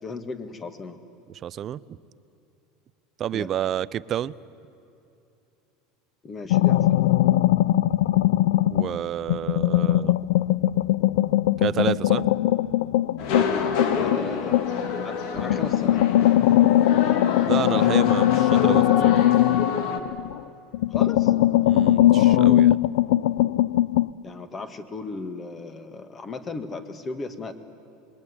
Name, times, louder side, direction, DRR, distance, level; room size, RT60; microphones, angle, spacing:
voice 1, 0.0-1.0 3.3-3.5 6.2-7.0 14.0-14.7 15.0-16.1 20.9-21.3 24.2-27.5, left 3 dB, 20° left, 10 dB, 1.8 m, -36 dB
voice 2, 1.4-1.8 3.2-4.3 8.7-10.1 11.6-12.2 17.5-19.1 21.6-22.8, right 10 dB, 35° right, 17 dB, 0.6 m, -29 dB
sound 1, 6.5-9.0 9.3-14.9 15.4-20.4 20.7-24.1, left 14 dB, 85° left, 0.5 m, -20 dB
sound 2, 13.2-20.0, left 5 dB, 60° left, 2.5 m, -28 dB
26.5 x 22.0 x 9.8 m, 2.9 s
supercardioid pair, 145°, 0 cm